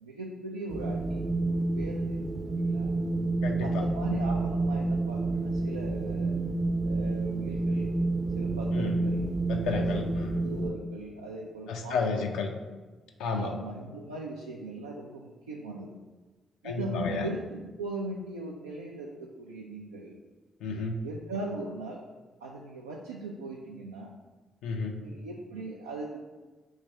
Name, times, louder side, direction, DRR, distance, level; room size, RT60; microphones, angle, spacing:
voice 1, 0.0-2.2 2.6-2.9 3.6-6.4 6.8-7.9 8.4-9.3 9.7-10.1 10.4-12.3 13.4-16.0 16.6-20.2 21.0-22.0 22.4-24.2 25.0-26.3, right 2 dB, 85° right, -2 dB, 0.3 m, -39 dB
Wind, 0.7-10.7, right 2 dB, 35° right, 0.5 m, -29 dB
voice 2, 3.4-3.8 8.7-8.9 9.5-10.4 11.7-12.5 13.2-13.5 16.6-17.2 20.6-21.0 24.6-25.0, left 4 dB, 70° left, 4 dB, 0.4 m, -31 dB
3.2 x 3.2 x 4.7 m, 1.3 s
hypercardioid pair, 40°, 0 cm